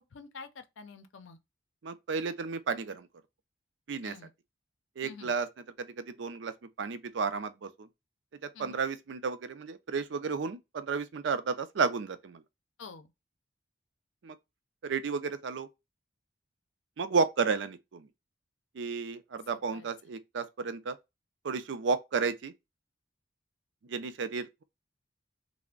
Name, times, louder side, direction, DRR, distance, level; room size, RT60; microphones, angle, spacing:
voice 1, 0.0-1.4 4.0-4.3 5.0-5.3 8.5-8.8 12.8-13.1 19.7-19.9, left 5 dB, 85° left, 0.5 m, -48 dB
voice 2, 1.8-3.1 3.9-4.1 5.0-5.5 5.8-6.5 6.8-7.9 8.6-12.4 14.2-14.4 14.8-15.7 17.0-18.0 18.8-21.0 21.4-22.5 23.9-24.6, right 5 dB, 75° right, 0.4 m, -32 dB
3.3 x 2.1 x 3.6 m
head